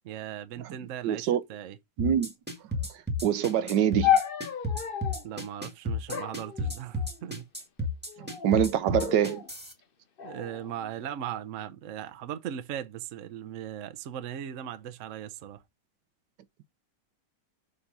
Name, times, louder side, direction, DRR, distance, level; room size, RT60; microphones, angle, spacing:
voice 1, 0.0-1.8 5.2-7.5 10.2-15.6, right 10 dB, 60° right, 0.9 m, -38 dB
voice 2, 1.0-1.4 2.0-2.3 3.2-4.2 8.2-9.4, right 9 dB, 75° right, 1.3 m, -25 dB
sound 1, 2.0-9.7, left 2 dB, 5° right, 1.6 m, -32 dB
sound 2, 4.0-5.3 6.1-7.3 8.1-8.6 8.9-9.5 10.2-11.2, left 10 dB, 55° left, 0.6 m, -31 dB
6.7 x 3.1 x 5.3 m
omnidirectional pair, 1.9 m